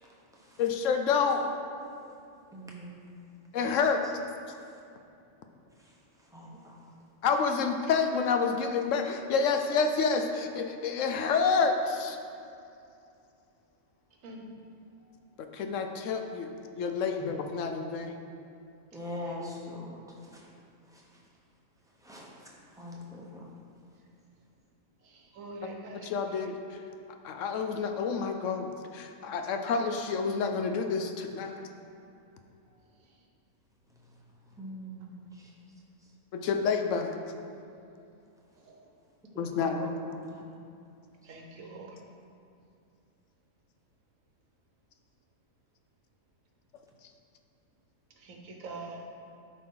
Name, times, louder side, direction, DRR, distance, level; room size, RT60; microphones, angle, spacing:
voice 1, 0.0-0.6 2.5-3.0 6.3-6.8 17.2-17.3 18.9-20.5 20.9-21.0 22.0-23.5 34.5-35.5 39.3-39.5 39.8-40.4, left 1 dB, 5° right, -4 dB, 0.8 m, -43 dB
voice 2, 0.6-1.4 3.5-4.0 7.2-12.2 15.4-18.2 26.0-26.5 27.2-31.7 36.3-37.2 39.4-39.9, left 5 dB, 70° left, 5 dB, 0.9 m, -28 dB
voice 3, 25.0-26.4 38.6-38.8 41.2-42.0 48.2-49.0, right 2 dB, 75° right, 1 dB, 1.3 m, -45 dB
11.5 x 4.2 x 3.8 m, 2.5 s
omnidirectional pair, 1.4 m